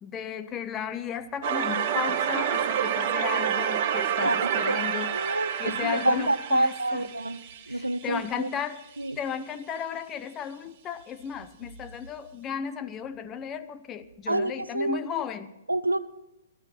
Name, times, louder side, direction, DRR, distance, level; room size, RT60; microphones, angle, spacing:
voice 1, 0.0-5.1 5.6-7.1 7.7-8.8 9.2-15.5, left 8 dB, 20° left, 10 dB, 0.8 m, -34 dB
sound 1, 1.4-8.3, right 8 dB, 40° right, 1.1 m, -28 dB
voice 2, 4.2-4.8 5.1-7.4 7.7-8.5 9.0-9.2 14.3-15.0 15.7-16.0, right 2 dB, 85° right, 15 dB, 0.7 m, -27 dB
18.0 x 13.0 x 4.4 m, 0.93 s
figure-of-eight pair, 115°, 0 cm